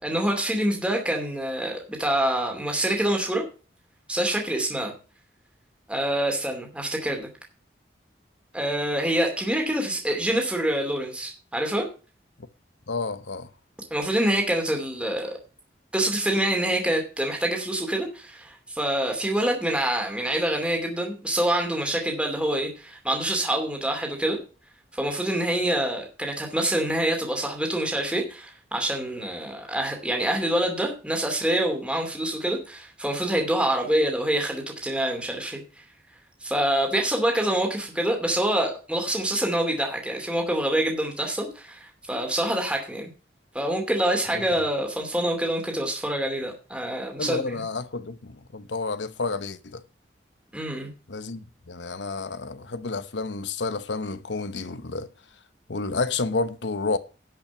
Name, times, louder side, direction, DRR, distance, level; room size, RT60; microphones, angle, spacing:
voice 1, 0.0-3.4 4.1-4.9 5.9-7.3 8.5-11.9 13.9-15.3 15.9-24.4 24.9-35.6 36.4-43.1 43.5-47.6 50.5-50.9, right 1 dB, 5° right, 2.6 m, -26 dB
voice 2, 12.9-13.5 44.3-44.4 47.2-49.8 51.1-55.1 55.7-57.0, left 3 dB, 85° left, 0.9 m, -30 dB
11.5 x 5.9 x 7.0 m
head